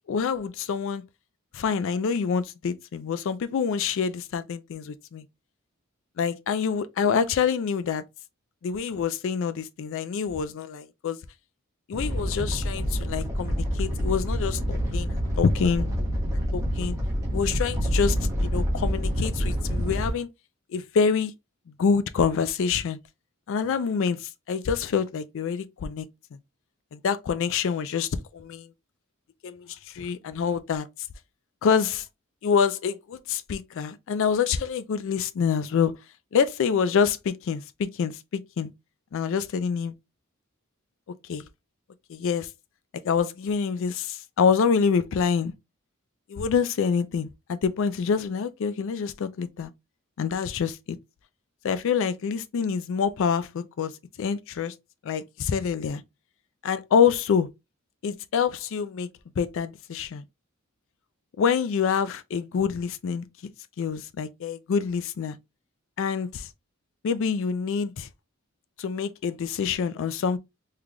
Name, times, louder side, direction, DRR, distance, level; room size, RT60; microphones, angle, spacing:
voice 1, 0.1-1.0 1.5-5.2 6.2-8.0 8.6-11.2 11.9-15.9 16.5-17.0 17.3-20.3 20.7-21.3 21.8-23.0 23.5-26.1 26.9-28.7 29.4-30.9 31.6-32.1 32.4-35.9 36.3-38.7 39.1-39.9 41.3-41.5 42.1-42.5 43.0-45.5 46.3-49.7 50.2-51.0 51.6-53.9 54.2-54.7 55.0-56.0 56.6-57.5 58.0-59.1 59.4-60.2 61.4-63.2 63.8-65.4 66.0-66.5 67.0-68.1 68.8-70.4, left 6 dB, 65° left, 0.4 m, -26 dB
Animal, 11.9-20.1, equal, 15° right, 1.0 m, -27 dB
3.7 x 3.2 x 2.2 m
head